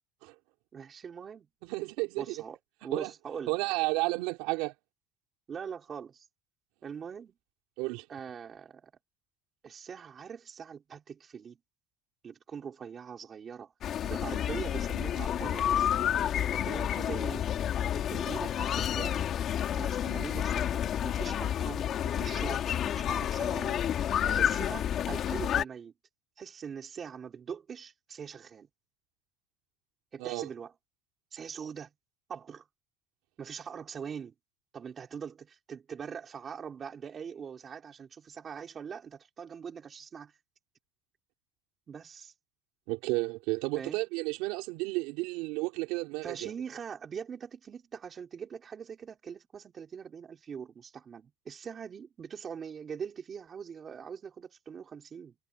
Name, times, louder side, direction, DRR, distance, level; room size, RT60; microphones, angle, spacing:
voice 1, 0.7-1.5 2.2-3.6 5.5-6.3 6.8-7.4 8.1-8.9 9.6-11.6 12.2-13.7 14.0-15.9 16.5-17.5 17.9-19.3 19.8-23.8 24.2-25.9 26.4-28.7 30.1-30.7 31.3-31.9 32.3-32.7 33.4-34.3 34.7-40.3 41.9-42.3 43.8-44.0 46.2-55.4, right 7 dB, 25° right, 4.1 m, -42 dB
voice 2, 1.6-2.3 2.9-3.1 3.5-4.7 7.8-8.1 30.2-30.5 42.9-46.5, right 23 dB, 70° right, 3.5 m, -32 dB
sound 1, 13.8-25.6, left 10 dB, 35° left, 2.9 m, -30 dB
cardioid pair, 155°, 0 cm